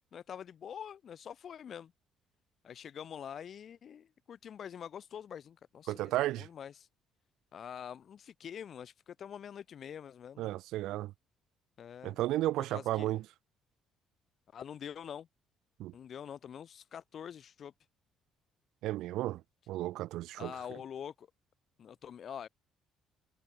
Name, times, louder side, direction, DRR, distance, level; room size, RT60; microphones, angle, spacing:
voice 1, 0.1-1.9 2.6-6.9 7.5-10.5 11.8-12.2 12.7-13.1 14.5-15.3 15.9-17.7 20.4-21.3 21.8-22.5, left 8 dB, 45° left, 4.3 m, -45 dB
voice 2, 5.9-6.5 10.4-11.1 12.0-13.2 15.8-15.9 18.8-19.4 19.7-20.5, right 15 dB, 80° right, 2.6 m, -33 dB
cardioid pair, 125°, 0 cm